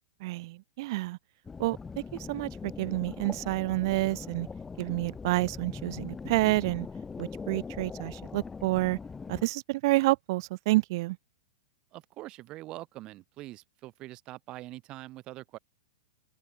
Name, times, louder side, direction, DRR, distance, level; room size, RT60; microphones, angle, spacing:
voice 1, 0.2-1.2 1.6-1.8 2.3-4.5 4.8-6.9 7.2-9.0 9.3-11.2, right 20 dB, 40° right, 0.3 m, -29 dB
sound 1, 1.5-9.4, left 5 dB, 10° left, 0.9 m, -41 dB
voice 2, 11.9-15.6, right 17 dB, 25° right, 2.6 m, -44 dB
open air
supercardioid pair, 165°, 3 cm